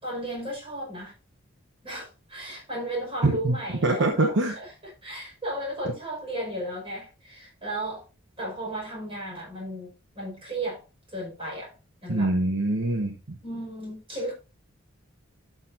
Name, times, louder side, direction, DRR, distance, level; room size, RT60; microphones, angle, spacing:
voice 1, 0.0-1.1 1.8-4.7 5.0-8.0 8.4-10.8 11.1-11.7 12.0-12.3 13.4-14.3, right 1 dB, 25° right, 5.5 m, -34 dB
voice 2, 3.2-3.6 3.8-4.5 12.1-13.4, right 2 dB, 60° right, 1.0 m, -24 dB
12.0 x 6.7 x 2.7 m
head